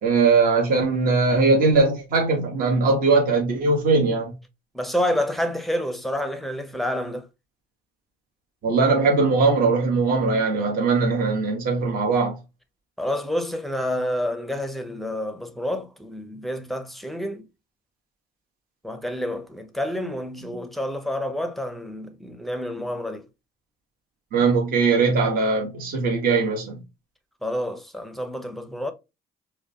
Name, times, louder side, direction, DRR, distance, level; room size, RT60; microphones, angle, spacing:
voice 1, 0.0-4.3 8.6-12.4 20.4-20.5 24.3-26.8, right 4 dB, 55° right, 1.3 m, -20 dB
voice 2, 4.7-7.3 13.0-17.5 18.8-23.3 27.4-28.9, left 1 dB, ahead, 0.6 m, -28 dB
4.9 x 2.2 x 2.8 m
cardioid pair, 110°, 17 cm